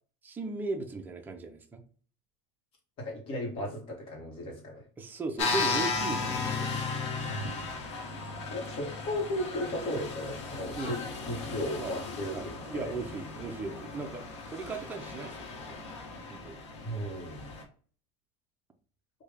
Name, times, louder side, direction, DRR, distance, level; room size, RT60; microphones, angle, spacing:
voice 1, 0.2-1.8 5.0-6.8 10.7-11.0 11.8-12.0 12.3-15.8 16.3-16.6, right 3 dB, 10° right, 3 dB, 0.5 m, -37 dB
voice 2, 3.0-4.9 8.5-11.0 11.3-12.9 16.8-17.5, left 1 dB, 40° left, 2 dB, 1.1 m, -35 dB
sound 1, 5.4-17.6, left 4 dB, 85° left, 0.9 m, -36 dB
3.3 x 2.3 x 3.3 m, 0.43 s
supercardioid pair, 140°, 15 cm